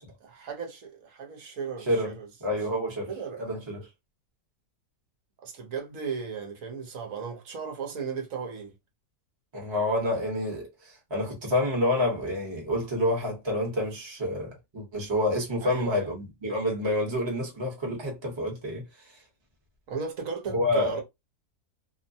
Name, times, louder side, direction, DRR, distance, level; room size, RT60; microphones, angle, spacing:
voice 1, 0.2-2.3 3.1-3.4 5.4-8.7 15.6-16.1 16.4-16.6 19.9-21.0, right 6 dB, 65° right, 1.2 m, -36 dB
voice 2, 1.8-2.1 2.4-3.1 3.4-3.9 9.5-18.8 20.5-21.0, left 1 dB, 20° right, 0.9 m, -28 dB
2.9 x 2.1 x 2.6 m
omnidirectional pair, 1.6 m